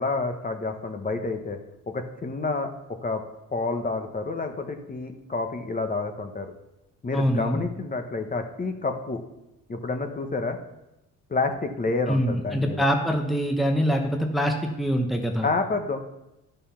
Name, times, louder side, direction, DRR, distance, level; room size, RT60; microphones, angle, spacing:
voice 1, 0.0-1.6 1.9-2.7 3.0-3.2 3.5-6.5 7.0-9.2 9.7-10.6 11.3-12.9 15.4-16.0, left 3 dB, 30° left, 5 dB, 1.2 m, -29 dB
voice 2, 7.1-7.6 12.1-15.5, equal, ahead, 3 dB, 0.9 m, -24 dB
11.0 x 5.5 x 5.8 m, 0.91 s
cardioid pair, 90°, 30 cm